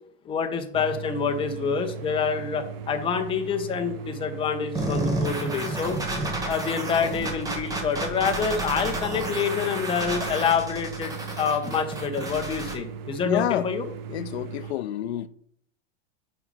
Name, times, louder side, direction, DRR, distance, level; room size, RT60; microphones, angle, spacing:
voice 1, 0.2-6.0 6.4-13.9, left 6 dB, 15° left, 0.8 m, -27 dB
sound 1, 0.7-14.7, right 6 dB, 65° right, 0.8 m, -38 dB
sound 2, 4.8-12.8, right 1 dB, 10° right, 1.3 m, -31 dB
voice 2, 13.2-13.7 14.1-15.3, left 12 dB, 85° left, 0.6 m, -28 dB
5.8 x 5.5 x 5.2 m
supercardioid pair, 150°, 31 cm